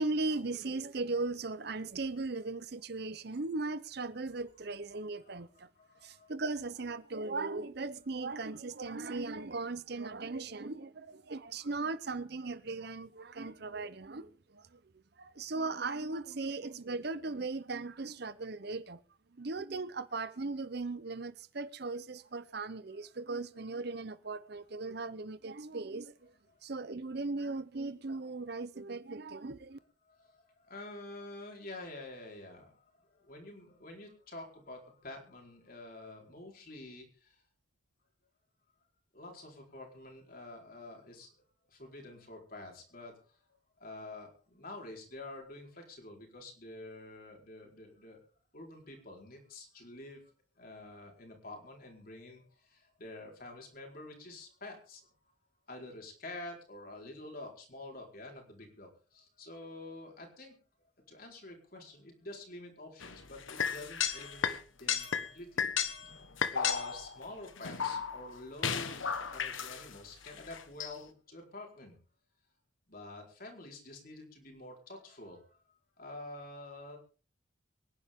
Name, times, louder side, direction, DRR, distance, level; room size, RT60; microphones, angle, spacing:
voice 1, 0.0-5.7 6.0-14.8 15.2-19.0 19.4-26.3 26.6-29.8, right 3 dB, 50° right, 0.7 m, -38 dB
voice 2, 5.5-6.3 30.0-37.4 39.1-41.3 41.7-43.4 43.8-48.2 48.5-55.1 55.7-60.6 61.1-65.8 66.5-72.0 72.9-75.6 76.0-77.0, left 2 dB, 45° left, 4.4 m, -48 dB
sound 1, 63.0-64.6 64.9-65.3 65.6-67.2 67.6-68.4 68.6-69.9 70.3-70.9, left 7 dB, 80° left, 1.4 m, -34 dB
24.5 x 11.0 x 3.7 m
head